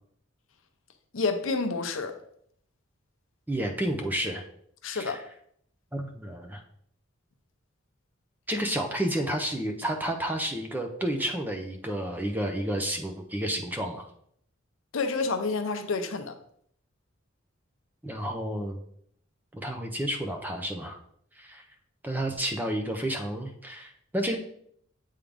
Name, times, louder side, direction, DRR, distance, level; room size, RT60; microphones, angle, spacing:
voice 1, 1.1-2.1 4.8-5.2 14.9-16.3, left 4 dB, 75° left, 0.6 m, -29 dB
voice 2, 3.5-4.4 4.9-5.2 5.9-6.6 8.5-14.1 18.0-18.8 19.5-21.0 21.4-21.6 22.0-24.4, right 1 dB, 10° right, 0.6 m, -31 dB
8.3 x 3.7 x 3.4 m
head